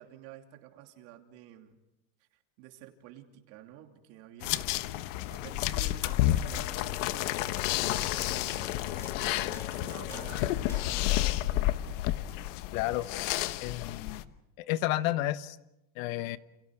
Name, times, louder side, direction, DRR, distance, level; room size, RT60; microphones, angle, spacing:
voice 1, 0.0-1.8 2.2-4.7 5.3-12.2, right 12 dB, 60° right, 4 dB, 2.9 m, -52 dB
sound 1, 4.4-14.2, left 15 dB, 70° left, 1.1 m, -30 dB
sound 2, 6.1-12.7, left 2 dB, 5° left, 2.4 m, -53 dB
voice 2, 12.7-13.1 13.6-14.2 14.6-15.6 16.0-16.4, left 15 dB, 90° left, 13 dB, 1.2 m, -31 dB
29.5 x 29.0 x 4.8 m, 0.93 s
cardioid pair, 180°, 39 cm